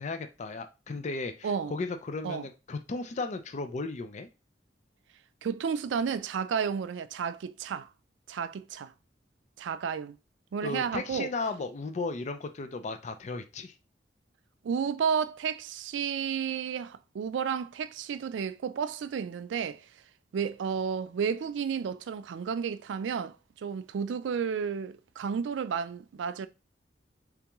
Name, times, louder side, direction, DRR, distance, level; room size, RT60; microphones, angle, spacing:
voice 1, 0.0-4.3 10.6-13.7, left 3 dB, 40° left, 0.4 m, -35 dB
voice 2, 1.4-1.8 2.2-2.5 5.4-7.9 8.3-8.9 9.6-10.2 10.5-11.3 14.6-19.9 20.3-26.5, right 6 dB, 85° right, 0.3 m, -32 dB
3.5 x 3.4 x 3.0 m
head